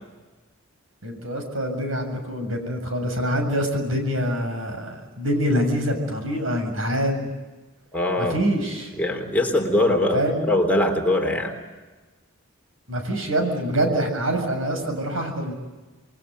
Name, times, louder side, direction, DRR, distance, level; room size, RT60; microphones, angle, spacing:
voice 1, 1.0-7.3 8.2-8.9 10.1-10.5 12.9-15.5, equal, 75° right, 5 dB, 6.9 m, -25 dB
voice 2, 7.9-8.4 8.9-11.5, left 1 dB, 5° left, 2 dB, 3.6 m, -22 dB
28.0 x 22.5 x 9.3 m, 1.2 s
head